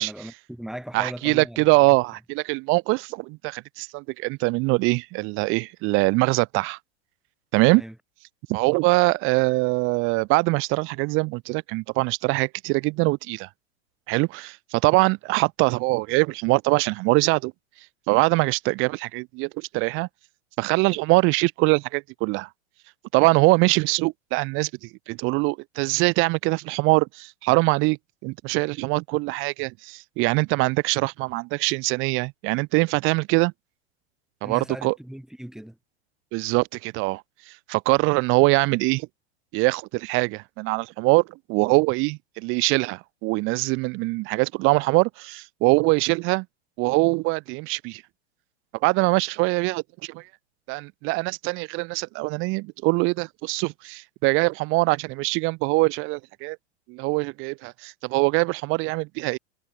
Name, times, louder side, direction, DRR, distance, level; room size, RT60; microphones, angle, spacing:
voice 1, 0.0-1.7 7.6-7.9 34.4-35.8, equal, ahead, 4.4 m, -38 dB
voice 2, 0.9-6.8 7.5-7.8 8.5-13.5 14.1-17.5 18.1-20.1 20.6-22.5 23.1-33.5 34.4-34.9 36.3-39.1 39.5-46.5 46.8-48.0 48.8-50.3 50.7-56.6 56.9-59.4, right 26 dB, 40° right, 0.6 m, -23 dB
supercardioid pair, 125°, 33 cm